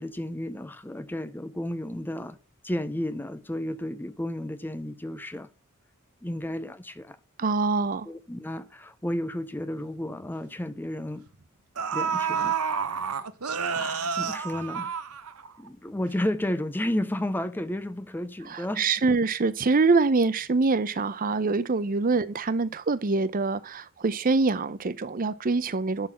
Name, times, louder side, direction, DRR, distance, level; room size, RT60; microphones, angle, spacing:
voice 1, 0.0-2.4 2.6-5.5 6.2-7.2 8.0-11.3 11.9-12.6 13.7-15.0 15.6-18.9, left 1 dB, 10° left, 0.5 m, -32 dB
voice 2, 7.4-8.1 18.5-26.1, right 3 dB, 40° right, 0.6 m, -25 dB
sound 1, 9.6-9.7 10.1-10.3 11.3-11.4 11.8-15.7 16.0-16.1, right 6 dB, 85° right, 0.9 m, -29 dB
11.0 x 4.0 x 7.4 m
head